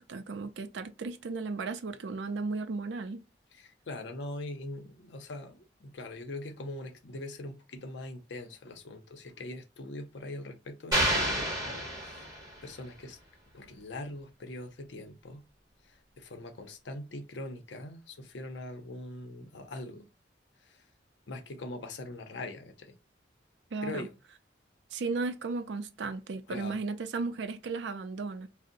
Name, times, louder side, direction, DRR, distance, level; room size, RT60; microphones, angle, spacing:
voice 1, 0.0-3.2 23.7-24.1 24.9-28.5, right 4 dB, 75° right, 0.4 m, -35 dB
voice 2, 3.6-12.3 12.6-13.2 13.5-15.4 15.9-20.1 20.7-20.8 21.3-22.9 23.8-24.1 26.5-26.8, left 2 dB, 75° left, 0.6 m, -42 dB
sound 1, 10.9-12.6, right 1 dB, 20° right, 1.4 m, -29 dB
2.6 x 2.0 x 3.8 m
head